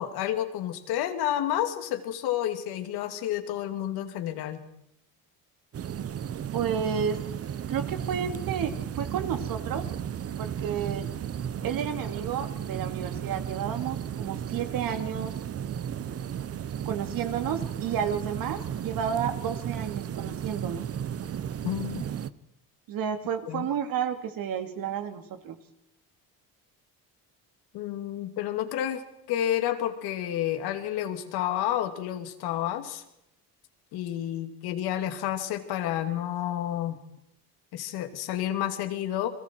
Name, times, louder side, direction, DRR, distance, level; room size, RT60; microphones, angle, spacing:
voice 1, 0.0-4.6 21.6-22.1 23.5-23.7 27.7-29.0 29.3-33.0 33.9-37.0 37.7-39.3, left 11 dB, 85° left, 7 dB, 2.6 m, -30 dB
sound 1, 5.7-22.3, right 9 dB, 40° right, 0.9 m, -34 dB
voice 2, 6.5-7.2 7.7-9.9 10.4-11.1 11.6-15.4 16.9-20.9 22.9-25.6, right 8 dB, 65° right, 6 dB, 2.7 m, -31 dB
30.0 x 23.0 x 4.6 m, 0.83 s
cardioid pair, 130°, 37 cm